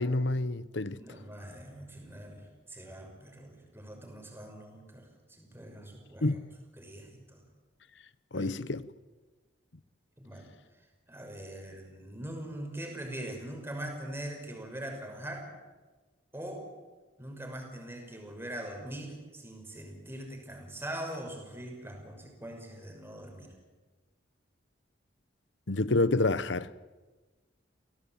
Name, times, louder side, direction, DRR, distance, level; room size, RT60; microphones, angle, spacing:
voice 1, 0.0-1.0 6.2-6.4 8.3-8.8 25.7-26.7, left 2 dB, 70° left, 1.0 m, -28 dB
voice 2, 1.0-6.4 6.8-7.4 8.3-8.5 10.2-10.5 11.1-15.5 16.3-16.7 17.2-23.5, right 1 dB, 10° right, 6.0 m, -42 dB
29.5 x 17.5 x 9.0 m
head